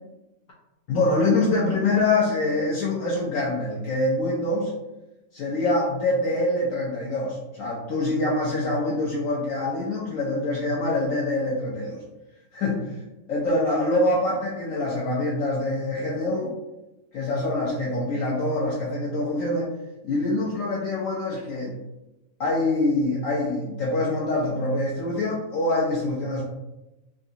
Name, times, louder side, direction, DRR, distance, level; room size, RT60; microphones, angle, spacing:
voice 1, 0.9-4.7 5.3-12.0 12.5-13.0 13.3-16.5 17.1-19.7 20.0-21.8 22.4-26.4, left 2 dB, 70° left, -4 dB, 0.8 m, -25 dB
3.7 x 2.3 x 2.5 m, 0.98 s
omnidirectional pair, 1.7 m